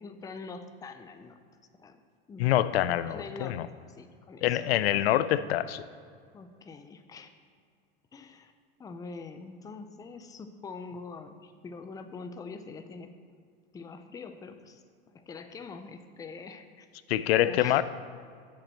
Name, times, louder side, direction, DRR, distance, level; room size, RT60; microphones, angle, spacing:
voice 1, 0.0-1.4 1.8-2.0 2.3-2.4 3.0-5.2 6.3-7.3 8.1-8.5 8.8-13.1 13.7-14.8 15.1-16.9 17.3-17.8, left 4 dB, 10° left, 8 dB, 0.4 m, -44 dB
voice 2, 2.4-3.7 4.4-5.8 17.1-17.8, left 13 dB, 90° left, 14 dB, 0.5 m, -25 dB
7.4 x 5.4 x 7.5 m, 2.2 s
supercardioid pair, 125°, 30 cm